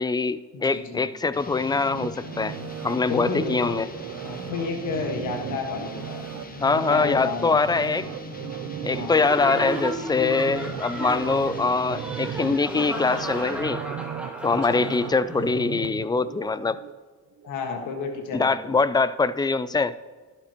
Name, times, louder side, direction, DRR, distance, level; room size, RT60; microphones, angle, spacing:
voice 1, 0.0-2.5 2.8-3.9 6.6-8.1 8.8-13.8 14.4-16.8 18.3-19.9, left 4 dB, 15° left, 16 dB, 0.3 m, -23 dB
voice 2, 0.5-1.1 3.0-3.8 4.2-6.2 6.8-7.6 8.9-9.3 14.5-14.8 17.4-18.8, left 4 dB, 90° left, 3 dB, 1.6 m, -32 dB
sound 1, 1.3-13.9, left 4 dB, 30° left, 1.0 m, -42 dB
sound 2, 1.9-17.0 17.4-17.5, right 11 dB, 60° right, 0.5 m, -36 dB
Laughter, 9.1-15.5, right 1 dB, 5° right, 1.5 m, -35 dB
12.0 x 11.0 x 3.0 m, 1.4 s
cardioid pair, 90°, 30 cm